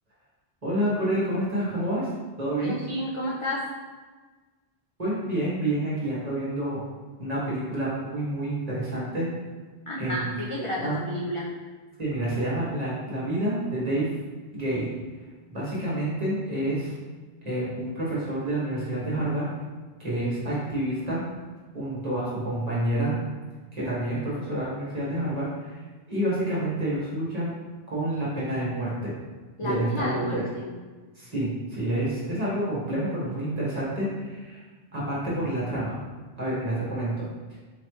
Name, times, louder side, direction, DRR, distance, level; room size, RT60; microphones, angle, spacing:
voice 1, 0.6-2.1 2.4-2.8 5.0-6.8 7.2-9.3 10.0-10.3 10.8-11.0 12.0-14.1 14.5-14.9 15.5-16.9 17.4-19.5 20.0-21.2 21.7-23.1 23.7-25.8 26.1-27.5 27.9-29.1 29.6-30.4 31.2-34.6 34.9-35.9 36.4-37.3, right 1 dB, 35° right, -7 dB, 1.4 m, -28 dB
voice 2, 2.6-3.7 9.9-11.5 29.6-30.7, left 1 dB, 50° left, -4 dB, 0.3 m, -31 dB
4.2 x 3.1 x 3.1 m, 1.4 s
omnidirectional pair, 1.1 m